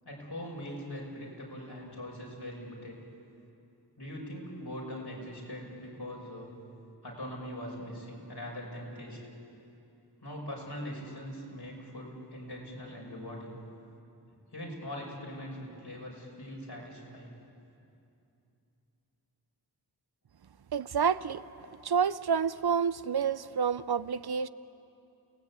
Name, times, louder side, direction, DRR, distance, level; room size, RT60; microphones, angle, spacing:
voice 1, 0.1-3.0 4.0-6.5 7.0-9.2 10.2-13.6 14.5-17.3, equal, 70° left, -2 dB, 5.5 m, -41 dB
voice 2, 20.7-21.4 21.8-24.5, right 7 dB, 65° right, 15 dB, 0.6 m, -28 dB
29.5 x 18.0 x 8.3 m, 2.8 s
wide cardioid pair, 40°, 41 cm